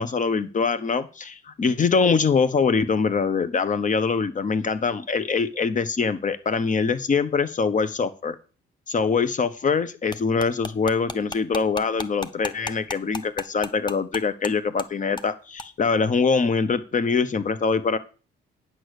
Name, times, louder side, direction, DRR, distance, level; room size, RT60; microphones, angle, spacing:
voice 1, 0.0-8.4 8.9-18.0, left 5 dB, 40° left, 13 dB, 1.2 m, -23 dB
sound 1, 10.1-14.5 14.8-14.9 15.2-15.3 15.6-15.7, left 3 dB, 20° left, 0.8 m, -34 dB
9.5 x 6.3 x 6.8 m, 0.35 s
cardioid pair, 90°, 20 cm